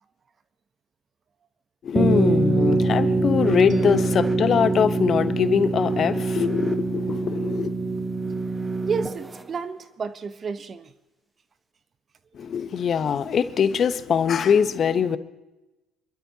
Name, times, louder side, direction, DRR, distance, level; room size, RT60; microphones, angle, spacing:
voice 1, 1.8-7.7 12.3-15.2, left 7 dB, 45° left, 1.0 m, -22 dB
sound 1, 2.0-9.4, right 3 dB, 15° right, 1.4 m, -24 dB
voice 2, 3.5-3.8 8.8-10.9, right 5 dB, 40° right, 1.0 m, -31 dB
27.0 x 12.5 x 2.9 m
hypercardioid pair, 65°, 0 cm